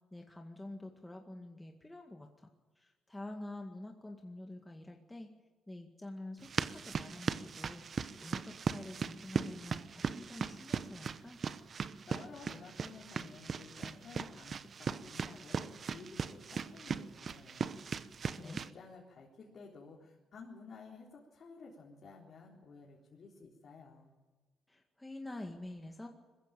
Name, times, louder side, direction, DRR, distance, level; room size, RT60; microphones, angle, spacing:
voice 1, 0.1-5.3 5.7-7.8 8.2-11.4 18.3-18.6 24.7-26.1, left 1 dB, 10° left, 2 dB, 2.0 m, -47 dB
sound 1, 6.4-18.7, right 6 dB, 50° right, 0.9 m, -39 dB
voice 2, 12.1-17.7 18.2-24.1, left 4 dB, 55° left, -3 dB, 4.0 m, -53 dB
21.0 x 15.0 x 9.0 m, 1.3 s
cardioid pair, 90°, 0 cm